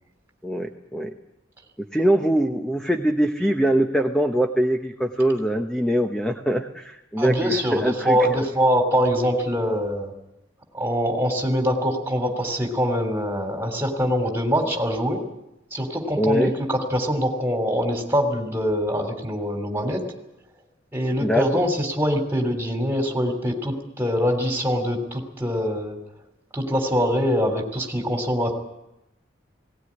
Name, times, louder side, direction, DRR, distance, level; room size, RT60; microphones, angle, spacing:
voice 1, 0.4-1.1 1.8-8.2 16.2-16.5 21.2-21.6, right 1 dB, 5° left, 5 dB, 0.9 m, -23 dB
voice 2, 7.2-10.1 10.7-15.2 15.7-20.1 20.9-26.0 26.5-28.5, equal, 10° right, 3 dB, 3.4 m, -23 dB
18.5 x 18.0 x 9.9 m, 0.89 s
head